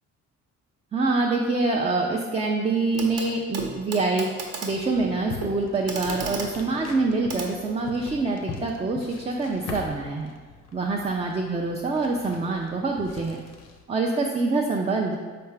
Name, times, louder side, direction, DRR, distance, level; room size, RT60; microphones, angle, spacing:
voice 1, 0.9-4.3 4.6-10.3 10.7-13.4 13.9-15.2, right 3 dB, 20° right, 0 dB, 0.4 m, -25 dB
Clock, 2.9-3.3 3.5-8.2 9.5-9.6, right 3 dB, 55° right, 0.9 m, -36 dB
sound 1, 4.7-13.8, left 4 dB, 60° left, 0.6 m, -42 dB
4.7 x 3.4 x 3.3 m, 1.4 s
cardioid pair, 90°, 30 cm